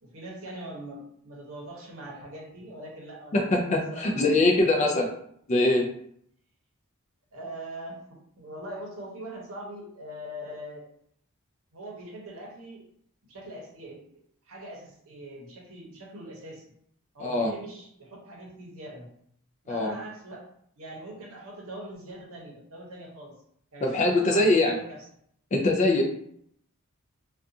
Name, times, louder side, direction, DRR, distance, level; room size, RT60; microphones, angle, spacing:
voice 1, 0.0-4.9 7.3-10.8 11.7-12.8 13.3-14.0 14.5-16.6 17.1-19.1 19.6-20.4 20.8-23.3 23.7-25.0, right 1 dB, 65° right, -2 dB, 0.8 m, -42 dB
voice 2, 3.3-5.1 5.5-5.9 17.2-17.5 19.7-20.0 23.8-24.8 25.5-26.0, left 2 dB, 35° left, 2 dB, 0.3 m, -22 dB
2.4 x 2.3 x 2.6 m, 0.67 s
head